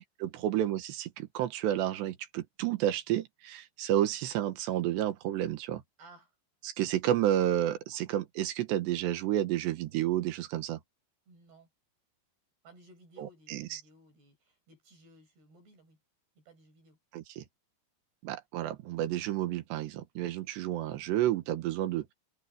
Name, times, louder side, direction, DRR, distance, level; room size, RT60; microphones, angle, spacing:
voice 1, 0.0-5.8 6.6-10.8 13.2-13.8 17.1-17.5 18.2-22.1, right 12 dB, 90° right, 3.6 m, -31 dB
voice 2, 6.0-6.4 11.3-11.7 12.6-16.0 16.4-17.0, right 1 dB, 70° right, 9.2 m, -58 dB
omnidirectional pair, 4.8 m